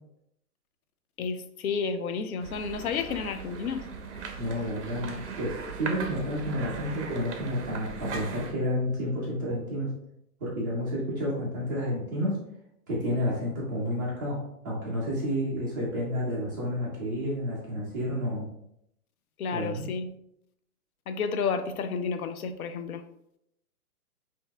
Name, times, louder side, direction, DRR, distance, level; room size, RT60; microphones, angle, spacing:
voice 1, 1.2-3.9 19.4-20.1 21.1-23.0, left 5 dB, 70° left, 9 dB, 0.6 m, -31 dB
sound 1, 2.4-8.5, right 5 dB, 50° right, 0.7 m, -39 dB
voice 2, 4.4-9.9 10.4-12.4 12.9-14.4 14.6-18.5 19.5-19.9, equal, 15° right, -8 dB, 0.6 m, -30 dB
5.7 x 2.8 x 2.3 m, 0.78 s
hypercardioid pair, 160°, 46 cm